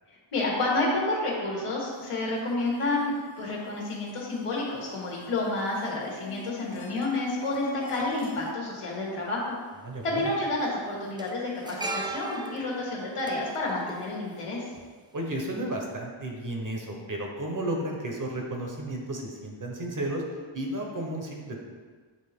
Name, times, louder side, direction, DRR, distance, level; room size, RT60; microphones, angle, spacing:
voice 1, 0.3-9.6 10.0-14.6, left 2 dB, 90° left, -4 dB, 1.6 m, -30 dB
sound 1, 3.2-3.3 3.9-8.5, left 7 dB, 65° left, 0.8 m, -45 dB
sound 2, 8.7-8.8 10.0-10.3 10.5-14.8 15.1-15.3, right 2 dB, 10° right, 0.3 m, -38 dB
voice 2, 9.8-10.3 15.1-20.2 20.5-21.6, right 1 dB, 40° right, 0 dB, 1.0 m, -33 dB
7.8 x 3.6 x 3.6 m, 1.5 s
wide cardioid pair, 140°, 50 cm